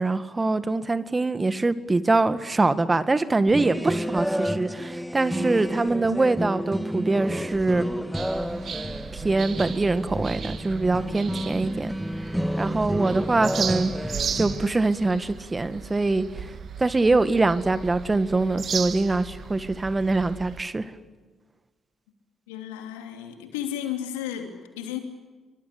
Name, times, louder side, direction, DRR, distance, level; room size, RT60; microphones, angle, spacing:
voice 1, 0.0-7.9 9.1-20.9, right 3 dB, 25° right, 12 dB, 1.9 m, -24 dB
sound 1, 3.5-14.6, equal, ahead, 1.6 m, -30 dB
sound 2, 8.1-20.6, right 6 dB, 55° right, 2.0 m, -36 dB
voice 2, 22.5-25.0, left 10 dB, 85° left, 5 dB, 2.9 m, -33 dB
27.5 x 23.5 x 8.6 m, 1.4 s
hypercardioid pair, 45°, 0 cm